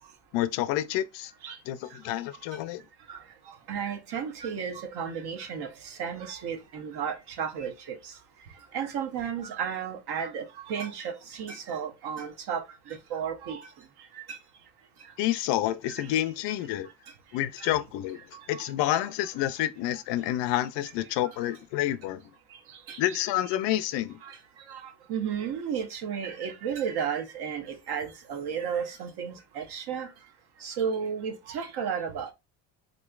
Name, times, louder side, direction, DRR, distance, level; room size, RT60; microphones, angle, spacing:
voice 1, 0.3-1.3 1.7-2.8 15.2-16.9 17.3-18.2 18.5-22.2 23.0-24.2, left 13 dB, 65° left, 0.5 m, -28 dB
voice 2, 3.7-8.1 8.7-13.7 14.1-14.4 15.0-15.1 15.9-16.1 17.6-17.7 18.3-18.7 21.2-21.4 22.5-23.2 24.2-24.4 24.7-30.1 30.6-32.3, right 7 dB, 55° right, 1.0 m, -34 dB
3.9 x 3.0 x 2.3 m
cardioid pair, 135°, 46 cm